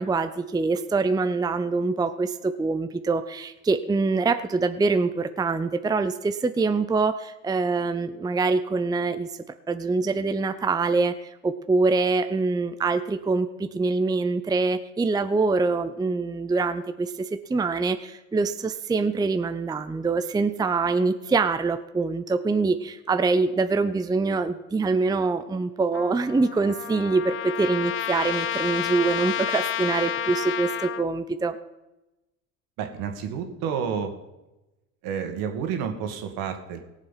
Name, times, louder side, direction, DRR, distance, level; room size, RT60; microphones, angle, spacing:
voice 1, 0.0-9.3 9.7-31.6, right 3 dB, 10° right, 10 dB, 0.6 m, -24 dB
Trumpet, 25.9-31.1, left 11 dB, 35° left, 0.5 m, -30 dB
voice 2, 32.8-34.1 35.0-36.8, right 7 dB, 65° right, 6 dB, 2.0 m, -30 dB
18.0 x 7.4 x 5.8 m, 1.0 s
supercardioid pair, 90°, 39 cm